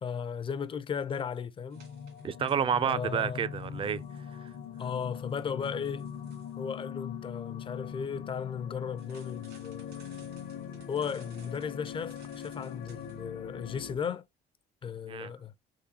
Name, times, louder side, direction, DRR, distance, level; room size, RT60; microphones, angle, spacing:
voice 1, 0.0-1.8 2.8-3.4 4.8-6.1 6.6-10.1 10.9-14.2 14.8-15.5, left 7 dB, 30° left, 0.4 m, -36 dB
sound 1, 1.7-14.0, left 8 dB, 60° left, 0.7 m, -42 dB
sound 2, 1.7-2.9 3.2-6.6 9.0-13.2, right 5 dB, 80° right, 2.0 m, -60 dB
voice 2, 2.2-4.0 15.1-15.3, right 7 dB, 30° right, 0.3 m, -29 dB
3.7 x 3.2 x 2.8 m
cardioid pair, 110°, 17 cm